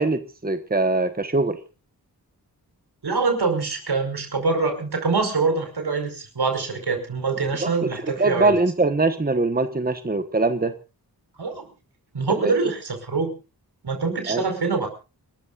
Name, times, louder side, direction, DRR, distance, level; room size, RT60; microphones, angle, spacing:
voice 1, 0.0-1.6 7.6-7.9 8.2-10.7 12.4-12.5 14.3-14.4, right 3 dB, 25° right, 9 dB, 1.3 m, -22 dB
voice 2, 3.0-8.6 11.4-11.6 12.1-13.3 13.8-14.9, right 4 dB, 85° right, 6 dB, 5.4 m, -24 dB
29.5 x 13.5 x 2.5 m, 0.32 s
wide cardioid pair, 80°, 38 cm